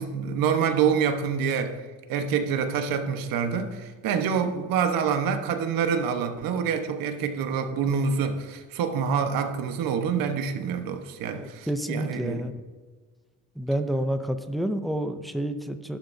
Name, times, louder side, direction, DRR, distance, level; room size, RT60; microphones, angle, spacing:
voice 1, 0.0-1.8 2.1-12.5, right 6 dB, 85° right, 6 dB, 1.2 m, -26 dB
voice 2, 11.3-12.5 13.6-16.0, right 1 dB, ahead, 7 dB, 0.4 m, -29 dB
14.0 x 11.5 x 2.7 m, 1.4 s
cardioid pair, 170°, 33 cm